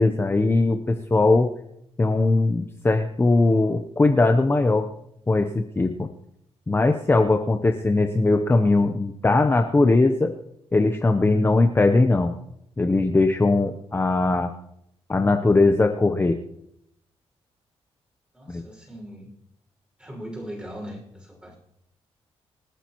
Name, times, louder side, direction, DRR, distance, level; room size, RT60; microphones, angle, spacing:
voice 1, 0.0-1.5 2.0-4.9 5.3-6.1 6.7-10.3 10.7-12.3 12.8-14.5 15.1-16.4 18.5-18.6, left 2 dB, 20° left, 6 dB, 0.8 m, -20 dB
voice 2, 18.3-19.3 20.0-21.6, equal, 10° right, -1 dB, 6.0 m, -39 dB
26.5 x 9.0 x 3.1 m, 0.77 s
cardioid pair, 105°, 11 cm